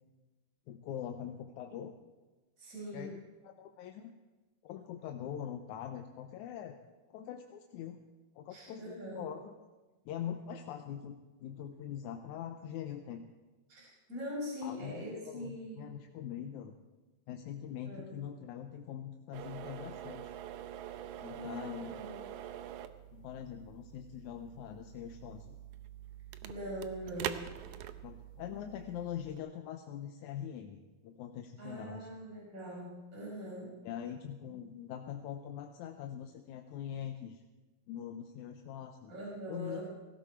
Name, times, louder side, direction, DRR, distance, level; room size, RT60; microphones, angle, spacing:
voice 1, 0.7-2.0 2.9-4.1 4.6-6.8 7.1-8.0 8.4-9.5 10.1-13.2 14.6-16.8 17.3-20.3 21.2-21.9 23.1-25.6 28.0-32.1 33.9-37.4 37.9-39.1 39.5-39.8, left 9 dB, 80° left, 5 dB, 2.1 m, -43 dB
voice 2, 2.6-3.1 8.5-9.2 13.7-15.8 17.8-18.1 21.4-22.3 26.4-27.5 31.6-33.7 39.1-39.8, equal, 25° right, -5 dB, 5.6 m, -42 dB
sound 1, 19.3-29.4, right 11 dB, 80° right, 2.1 m, -45 dB
17.5 x 16.0 x 4.5 m, 1.2 s
omnidirectional pair, 3.4 m